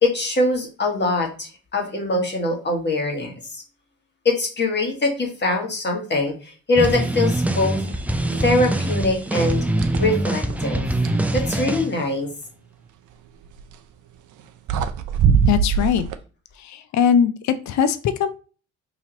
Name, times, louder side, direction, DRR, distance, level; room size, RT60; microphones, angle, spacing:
voice 1, 0.0-3.6 4.2-7.8 8.4-9.6 10.0-10.8 11.3-12.3, left 2 dB, 30° left, 1 dB, 1.4 m, -23 dB
sound 1, 6.8-11.9, right 1 dB, 5° right, 0.3 m, -23 dB
sound 2, 7.8-8.0 8.3-9.0 9.4-11.3 13.5-13.8 14.4-14.5 14.7-16.2, right 7 dB, 60° right, 0.5 m, -23 dB
voice 2, 15.5-16.0 16.6-18.3, left 8 dB, 55° left, 11 dB, 0.5 m, -20 dB
3.0 x 2.8 x 3.8 m, 0.36 s
supercardioid pair, 70°, 34 cm